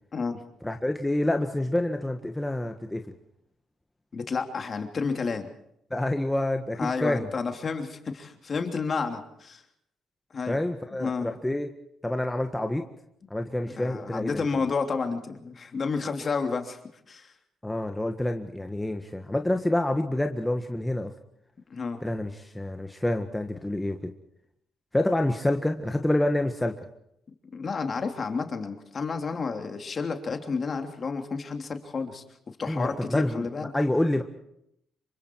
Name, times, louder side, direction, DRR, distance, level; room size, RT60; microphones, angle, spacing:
voice 1, 0.6-3.0 5.9-7.3 10.5-11.7 12.0-12.9 13.3-14.6 17.6-21.1 22.0-24.1 24.9-26.8 32.7-33.5 33.7-34.2, left 1 dB, 10° left, 5 dB, 1.6 m, -27 dB
voice 2, 4.1-5.5 6.8-9.6 10.3-10.6 11.0-11.3 13.8-16.8 17.1-17.3 21.7-22.0 27.5-32.2 32.6-33.7, left 4 dB, 40° left, 5 dB, 3.1 m, -30 dB
27.0 x 24.5 x 4.7 m, 0.75 s
cardioid pair, 90°, 0 cm